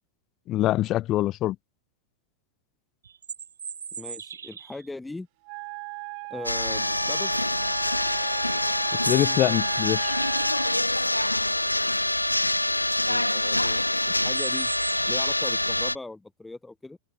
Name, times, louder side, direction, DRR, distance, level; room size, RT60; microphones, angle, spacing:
voice 1, 0.5-1.6 9.1-10.1, left 15 dB, 35° left, 0.3 m, -24 dB
sound 1, 3.0-4.9 9.4-9.5 9.9-10.3 12.4-12.5 12.8-13.1 14.2-15.6, right 7 dB, 70° right, 4.5 m, -40 dB
voice 2, 4.0-5.3 6.3-7.6 13.1-14.7 15.1-17.0, left 2 dB, 5° left, 5.5 m, -39 dB
Wind instrument woodwind instrument, 5.4-10.8, right 35 dB, 45° right, 0.8 m, -37 dB
sound 2, 6.4-15.9, left 1 dB, 85° left, 0.6 m, -25 dB
open air
figure-of-eight pair, 90°, 0 cm